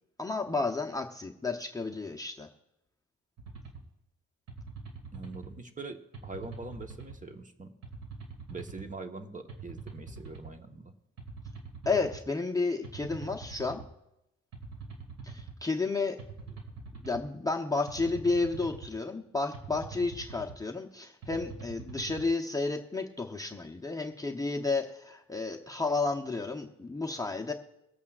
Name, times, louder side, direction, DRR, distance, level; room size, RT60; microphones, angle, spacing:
voice 1, 0.2-2.5 11.9-13.8 15.2-16.2 17.0-27.5, left 3 dB, 10° left, 2 dB, 0.8 m, -32 dB
sound 1, 3.4-3.8 4.5-5.5 6.1-7.2 7.8-8.9 9.5-10.5 11.2-12.2 12.8-13.9 14.5-15.6 16.2-17.2 17.9-18.9 19.5-20.6 21.2-22.2, right 4 dB, 65° right, 2.4 m, -44 dB
voice 2, 5.1-7.7 8.5-10.9, right 3 dB, 25° right, 6 dB, 1.1 m, -43 dB
23.5 x 8.3 x 2.4 m, 0.86 s
cardioid pair, 90°, 30 cm